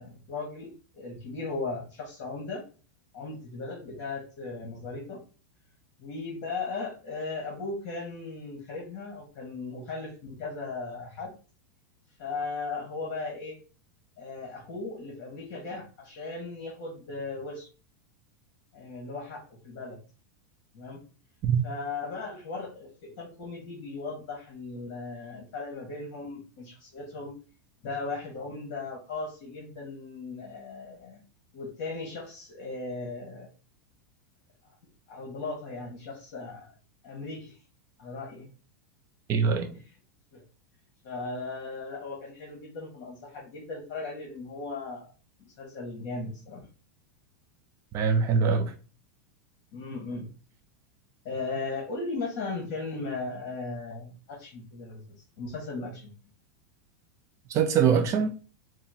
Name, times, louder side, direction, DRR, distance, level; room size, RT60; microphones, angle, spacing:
voice 1, 0.0-2.7 3.1-5.2 6.0-11.3 12.2-13.6 14.2-17.7 18.7-20.0 20.7-21.0 21.6-27.4 27.8-31.2 31.5-33.5 35.1-36.7 37.0-37.6 38.0-38.5 40.3-40.4 41.0-45.1 45.4-46.6 49.7-50.3 51.2-56.1, left 3 dB, 45° left, 1.4 m, -37 dB
voice 2, 39.3-39.7 47.9-48.7 57.5-58.3, right 6 dB, 30° right, 0.5 m, -23 dB
5.5 x 2.1 x 2.8 m
supercardioid pair, 145°, 10 cm